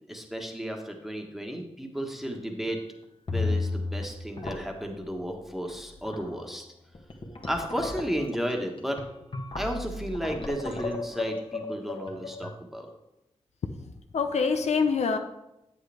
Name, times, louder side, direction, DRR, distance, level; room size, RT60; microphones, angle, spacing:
voice 1, 0.1-2.8 3.3-6.6 7.4-9.0 9.6-12.9, equal, ahead, 2 dB, 1.4 m, -33 dB
sound 1, 2.0-2.4 2.7-2.8 3.3-4.1 4.4-4.9 5.7-5.8 6.1-6.4 6.9-12.5, left 3 dB, 50° left, 1.4 m, -33 dB
voice 2, 13.8-15.2, left 5 dB, 80° left, 7 dB, 0.6 m, -26 dB
8.2 x 7.7 x 3.5 m, 0.89 s
cardioid pair, 50°, 11 cm